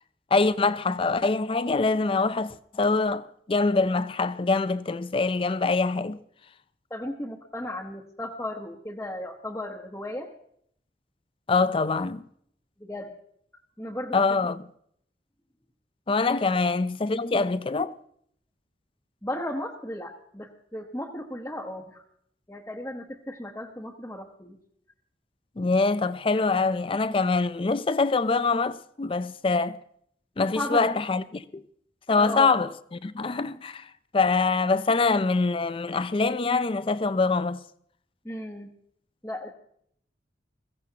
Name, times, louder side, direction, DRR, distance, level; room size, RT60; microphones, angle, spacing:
voice 1, 0.3-6.2 11.5-12.2 14.1-14.6 16.1-17.9 25.6-29.8 30.4-31.6 32.1-32.7 33.0-33.8 34.1-37.6, left 3 dB, 30° left, 0.5 m, -24 dB
voice 2, 6.9-10.3 12.8-13.1 13.8-14.4 19.2-22.0 22.5-24.6 30.5-30.8 32.2-32.5 38.2-38.7 39.2-39.5, left 1 dB, 15° left, 1.0 m, -35 dB
21.5 x 15.5 x 2.9 m
head